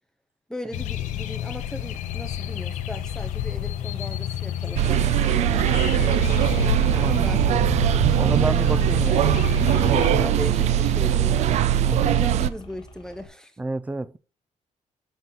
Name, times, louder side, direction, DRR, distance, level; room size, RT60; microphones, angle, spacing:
voice 1, 0.5-9.3 10.1-13.5, left 1 dB, 5° left, 0.8 m, -38 dB
sound 1, 0.7-10.1, left 11 dB, 80° left, 0.7 m, -30 dB
sound 2, 1.8-13.3, left 1 dB, 40° left, 1.3 m, -46 dB
sound 3, 4.8-12.5, right 11 dB, 65° right, 0.5 m, -21 dB
voice 2, 6.9-7.6 8.2-9.3 9.8-10.5 11.9-12.1 13.6-14.2, right 2 dB, 10° right, 0.4 m, -30 dB
6.8 x 4.0 x 5.9 m
cardioid pair, 155°, 13 cm